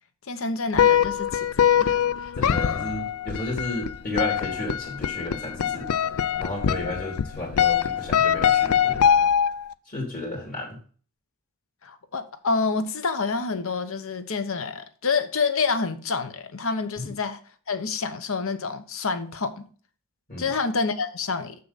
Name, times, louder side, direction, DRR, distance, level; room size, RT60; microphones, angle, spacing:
voice 1, 0.3-2.6 11.8-17.4 17.7-19.6 20.4-21.6, left 4 dB, 65° left, 0.9 m, -28 dB
sound 1, 0.7-9.7, left 9 dB, 85° left, 0.4 m, -23 dB
voice 2, 2.4-5.9 6.4-9.1 9.9-10.8 17.0-17.1 20.3-20.5, left 1 dB, 40° left, 2.6 m, -33 dB
7.0 x 6.7 x 4.0 m
head